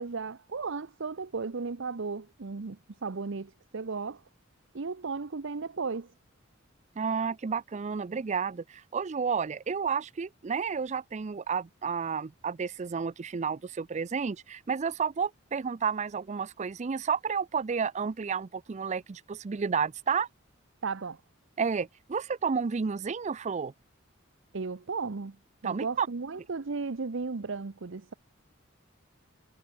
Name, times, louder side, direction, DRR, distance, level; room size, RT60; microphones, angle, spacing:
voice 1, 0.0-4.2 4.7-6.1 20.8-21.2 24.5-25.4 25.6-28.1, right 4 dB, 65° right, 0.7 m, -35 dB
voice 2, 7.0-20.3 21.6-23.7 25.6-26.1, right 6 dB, 35° right, 0.4 m, -31 dB
head